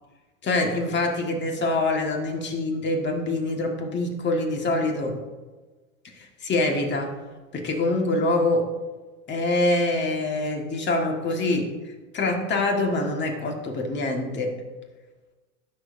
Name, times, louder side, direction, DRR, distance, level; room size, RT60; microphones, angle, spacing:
voice 1, 0.4-5.2 6.2-7.2 7.5-8.7 9.3-11.7 12.1-14.6, left 2 dB, 25° left, 2 dB, 1.6 m, -25 dB
15.5 x 6.6 x 2.6 m, 1.3 s
supercardioid pair, 120°, 39 cm